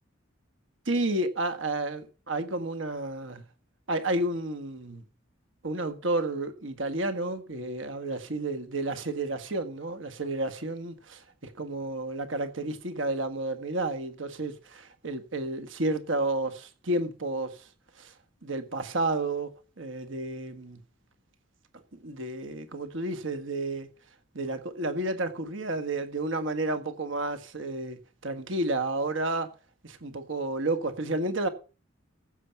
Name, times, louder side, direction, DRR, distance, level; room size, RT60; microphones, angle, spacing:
voice 1, 0.8-3.5 3.9-5.0 5.6-17.6 18.0-18.1 18.4-19.5 19.8-20.8 22.0-23.9 24.3-29.5 29.8-31.5, right 2 dB, 75° right, 1.7 m, -31 dB
15.0 x 7.0 x 6.0 m
head